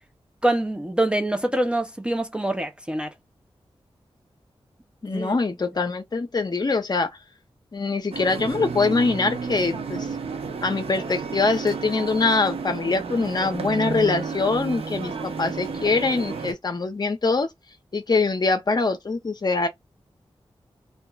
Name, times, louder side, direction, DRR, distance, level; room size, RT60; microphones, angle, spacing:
voice 1, 0.4-3.1 5.1-5.4, right 1 dB, 10° right, 0.4 m, -25 dB
voice 2, 5.0-7.1 7.7-10.1 10.6-17.5 17.9-19.7, left 3 dB, 45° left, 0.6 m, -23 dB
sound 1, 8.1-16.5, right 5 dB, 75° right, 0.6 m, -32 dB
2.8 x 2.3 x 2.2 m
wide cardioid pair, 95°, 10 cm